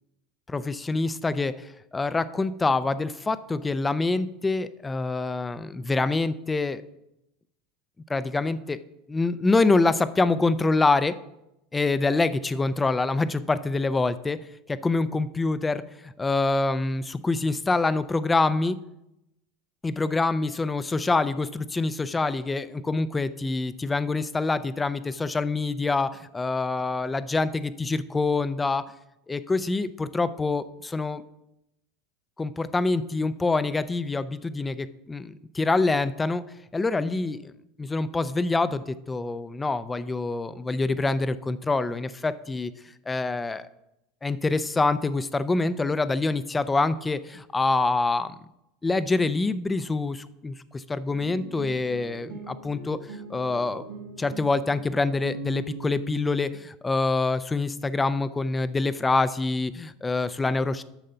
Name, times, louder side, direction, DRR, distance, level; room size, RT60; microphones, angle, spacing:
voice 1, 0.5-6.8 8.1-8.8 9.1-11.1 11.7-14.4 14.7-18.8 19.8-28.9 29.3-31.2 32.4-36.4 36.7-37.5 37.8-42.7 43.1-43.7 44.2-48.3 48.8-53.0 53.3-53.8 54.2-60.8, left 3 dB, 15° left, 14 dB, 0.5 m, -26 dB
sound 1, 51.1-56.6, right 3 dB, 90° right, 1.9 m, -41 dB
9.0 x 6.5 x 5.6 m, 0.86 s
hypercardioid pair, 95°, 0 cm